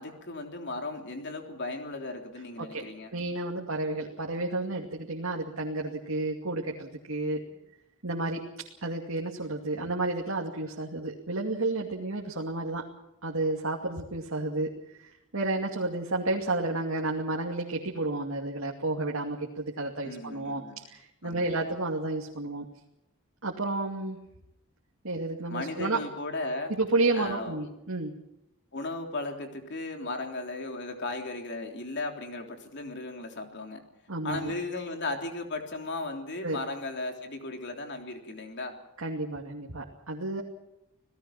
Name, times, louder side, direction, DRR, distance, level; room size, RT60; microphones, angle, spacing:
voice 1, 0.0-3.1 7.5-7.6 20.0-20.8 21.2-21.7 25.5-26.8 27.1-27.6 28.7-33.8 34.2-38.7, left 2 dB, 55° left, 3 dB, 3.4 m, -36 dB
voice 2, 3.1-7.4 8.0-8.5 8.8-12.8 13.2-14.7 15.0-22.7 23.4-24.2 25.0-26.0 26.7-28.1 34.1-34.5 36.4-36.6 39.0-40.4, right 2 dB, 70° right, 0 dB, 2.5 m, -31 dB
28.0 x 18.0 x 5.9 m, 0.85 s
head